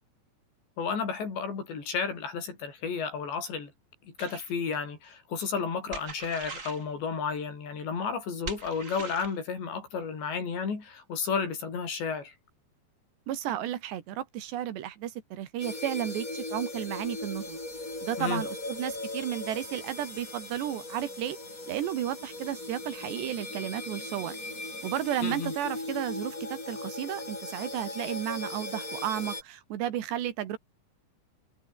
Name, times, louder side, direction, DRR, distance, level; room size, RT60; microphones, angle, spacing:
voice 1, 0.8-3.7 4.0-12.3 18.2-18.4 25.2-25.5, left 5 dB, 70° left, 8.4 m, -32 dB
sound 1, 4.2-4.5 5.9-6.8 8.4-9.4, right 4 dB, 30° right, 1.4 m, -41 dB
voice 2, 13.3-17.6 18.0-21.4 21.7-24.4 24.8-30.6, right 11 dB, 70° right, 4.1 m, -33 dB
sound 2, 15.6-29.4, left 2 dB, 20° left, 5.5 m, -38 dB
omnidirectional pair, 5.2 m